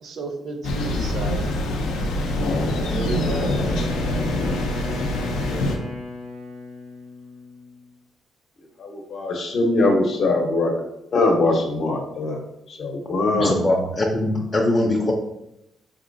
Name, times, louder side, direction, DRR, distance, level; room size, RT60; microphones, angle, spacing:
voice 1, 0.0-1.5 2.7-3.8, right 3 dB, 65° right, 4 dB, 0.6 m, -32 dB
Thunder, 0.6-5.8, left 1 dB, 90° left, 0.5 m, -24 dB
Wind instrument woodwind instrument, 2.0-7.9, left 2 dB, 80° right, 0.9 m, -36 dB
voice 2, 8.8-10.7 11.1-12.4 12.7-13.5, left 2 dB, 60° left, 2 dB, 0.7 m, -21 dB
voice 3, 13.3-15.1, left 1 dB, 25° left, -1 dB, 0.5 m, -21 dB
3.8 x 2.8 x 2.6 m, 0.84 s
cardioid pair, 90°, 0 cm